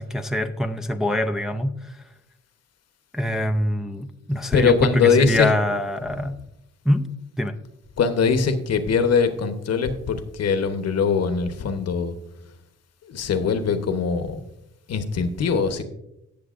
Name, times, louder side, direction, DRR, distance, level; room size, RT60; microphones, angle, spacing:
voice 1, 0.0-1.9 3.1-6.4 6.9-7.1 7.4-7.6, left 1 dB, ahead, 5 dB, 0.5 m, -24 dB
voice 2, 4.3-5.5 6.1-6.2 8.0-12.1 13.0-14.4 14.9-15.8, left 5 dB, 55° left, 9 dB, 1.1 m, -22 dB
18.0 x 6.7 x 2.5 m, 0.85 s
cardioid pair, 90°, 30 cm